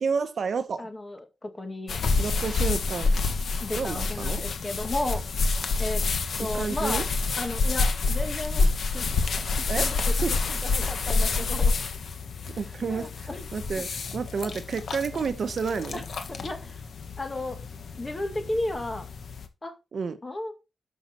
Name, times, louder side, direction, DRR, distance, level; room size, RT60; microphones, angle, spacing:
voice 1, 0.0-0.9 2.2-3.1 3.7-4.4 6.5-7.0 9.7-9.9 10.2-10.4 12.6-16.0 19.9-20.2, right 5 dB, 55° right, 1.0 m, -30 dB
voice 2, 0.8-2.0 3.6-5.2 5.8-6.0 6.4-7.0 7.4-9.1 9.6-10.1 10.6-11.7 12.9-13.5 15.9-16.0 16.3-16.8 17.2-17.6 18.0-19.1 19.6-19.7 20.2-20.5, left 1 dB, 20° left, 1.9 m, -34 dB
sound 1, 1.9-19.5, left 4 dB, 65° left, 1.6 m, -28 dB
12.0 x 6.4 x 4.3 m
wide cardioid pair, 165°, 0 cm